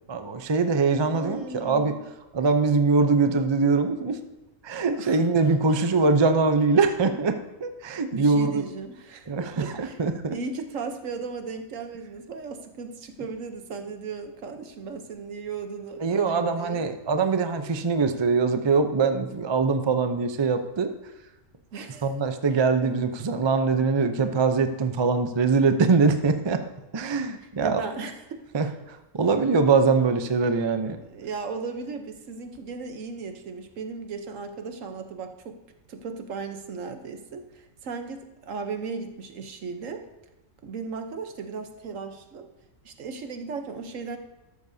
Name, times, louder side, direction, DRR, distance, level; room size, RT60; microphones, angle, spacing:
voice 1, 0.1-2.0 2.3-4.2 4.6-8.6 9.3-10.4 16.0-20.9 22.0-26.6 26.9-27.8 28.5-31.0, right 4 dB, 30° right, 7 dB, 0.5 m, -23 dB
voice 2, 1.0-2.0 5.0-5.2 5.7-5.9 8.1-10.0 10.3-16.9 17.2-17.4 21.7-22.1 27.6-28.4 31.0-35.6 35.9-40.0 40.6-42.5 42.8-44.2, right 4 dB, 70° right, 7 dB, 1.3 m, -36 dB
13.0 x 12.0 x 2.7 m, 1.0 s
omnidirectional pair, 1.4 m